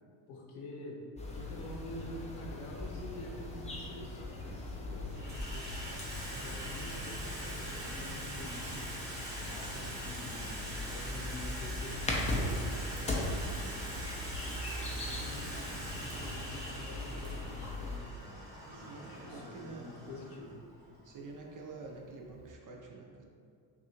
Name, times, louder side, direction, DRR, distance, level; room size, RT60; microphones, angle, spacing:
voice 1, 0.3-1.1 1.3-5.8 6.3-8.9 9.4-12.9 13.2-13.9 15.0-20.6, left 1 dB, 70° left, -2 dB, 1.1 m, -47 dB
sound 1, 1.2-18.0, left 1 dB, 15° left, 0.5 m, -39 dB
Water tap faucet / Sink (filling or washing), 3.2-3.3 4.2-4.6 4.9-22.5, right 1 dB, 20° right, 1.2 m, -44 dB
sound 2, 12.3-16.4 17.2-17.9, right 3 dB, 90° right, 0.8 m, -54 dB
voice 2, 18.7-20.2 21.0-23.2, right 3 dB, 40° right, 0 dB, 0.6 m, -48 dB
6.0 x 2.5 x 2.9 m, 2.3 s
cardioid pair, 130°, 49 cm